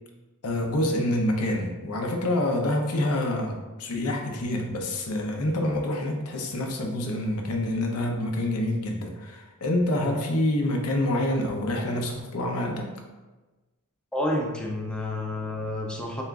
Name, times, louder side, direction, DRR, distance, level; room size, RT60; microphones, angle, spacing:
voice 1, 0.4-12.9, left 1 dB, 85° left, 1 dB, 0.7 m, -27 dB
voice 2, 14.1-16.2, left 1 dB, 5° left, -2 dB, 0.5 m, -29 dB
6.8 x 2.5 x 2.3 m, 1.2 s
head